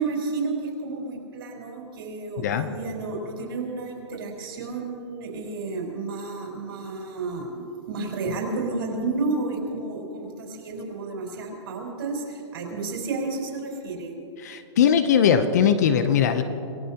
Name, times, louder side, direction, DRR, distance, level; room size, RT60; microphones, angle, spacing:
voice 1, 0.0-14.1, right 3 dB, 55° right, -1 dB, 4.8 m, -31 dB
voice 2, 14.4-16.4, left 8 dB, 35° left, 10 dB, 0.7 m, -20 dB
27.5 x 17.5 x 2.9 m, 2.8 s
hypercardioid pair, 175°, 15 cm